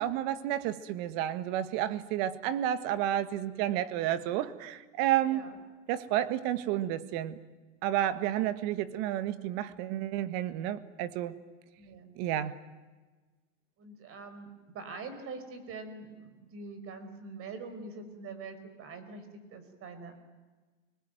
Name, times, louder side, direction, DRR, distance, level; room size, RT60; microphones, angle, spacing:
voice 1, 0.0-5.4 5.9-7.4 7.8-11.3 12.2-12.5, right 12 dB, 55° right, 1.8 m, -31 dB
voice 2, 5.3-5.6 11.8-12.1 13.8-20.3, right 4 dB, 35° right, 5.1 m, -44 dB
29.0 x 20.5 x 9.2 m
supercardioid pair, 125°, 36 cm